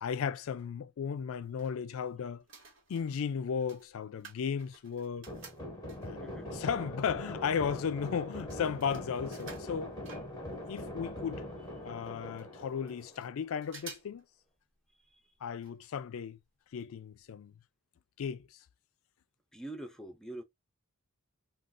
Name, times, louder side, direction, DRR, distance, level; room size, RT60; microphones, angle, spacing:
voice 1, 0.0-2.4 2.9-5.3 6.0-10.0 10.7-11.5 11.8-14.2 15.4-16.4 16.7-17.5 18.2-18.5, left 7 dB, 65° left, 0.3 m, -35 dB
sound 1, 1.2-2.1 2.4-6.3 6.9-7.0 7.2-10.8 11.1-11.2 11.4-11.5 12.0-12.1 12.4-13.3 13.6-14.2 14.5-14.6 15.6-15.9 16.2-16.3 16.8-16.9 17.3-17.4, right 4 dB, 60° right, 1.3 m, -53 dB
digiti bombing, 5.3-13.6, left 1 dB, 20° left, 0.9 m, -42 dB
voice 2, 6.2-6.5 19.5-20.4, right 1 dB, ahead, 0.5 m, -44 dB
2.5 x 2.3 x 3.6 m
head